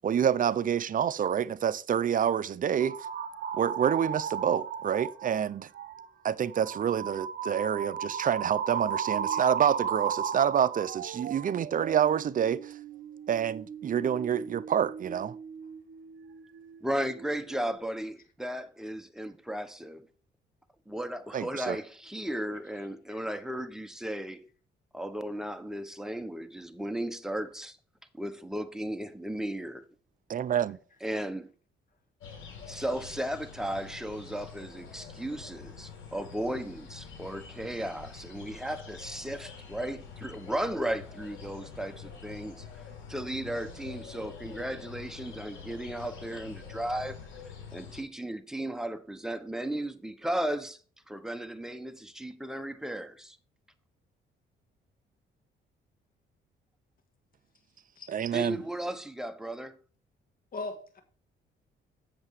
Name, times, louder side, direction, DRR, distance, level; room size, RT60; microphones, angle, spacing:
voice 1, 0.0-3.0 3.5-5.7 6.2-12.8 13.3-15.4 21.3-21.8 30.3-30.8 58.1-58.6, right 9 dB, 45° right, 0.6 m, -27 dB
sound 1, 2.8-5.4 5.7-6.1 6.5-16.8 17.1-17.8, right 7 dB, 65° right, 0.9 m, -36 dB
voice 2, 16.8-20.1 20.9-24.5 24.9-27.8 28.2-29.9 31.0-31.5 32.7-42.7 43.1-47.2 47.7-50.8 51.1-53.4 58.3-59.8, right 1 dB, 5° right, 1.0 m, -35 dB
sound 2, 32.2-48.0, left 6 dB, 80° left, 3.9 m, -46 dB
voice 3, 60.5-61.0, left 3 dB, 45° left, 1.6 m, -39 dB
7.8 x 6.6 x 4.8 m
cardioid pair, 90°, 20 cm